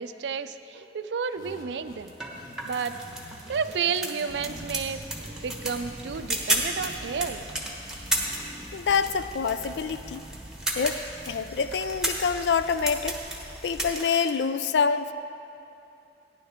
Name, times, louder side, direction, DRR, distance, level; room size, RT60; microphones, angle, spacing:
voice 1, 0.0-2.1 2.6-2.9 3.5-7.5, right 6 dB, 75° right, 12 dB, 0.4 m, -31 dB
sound 1, 1.2-8.9, equal, 55° left, 1.8 m, -49 dB
sound 2, 2.1-14.3, right 1 dB, 5° right, 1.1 m, -34 dB
sound 3, 4.3-13.9, right 1 dB, 35° right, 0.7 m, -44 dB
voice 2, 8.7-10.2 10.8-13.2 13.6-15.1, left 6 dB, 80° left, 12 dB, 0.4 m, -26 dB
15.0 x 10.5 x 3.6 m, 2.8 s
head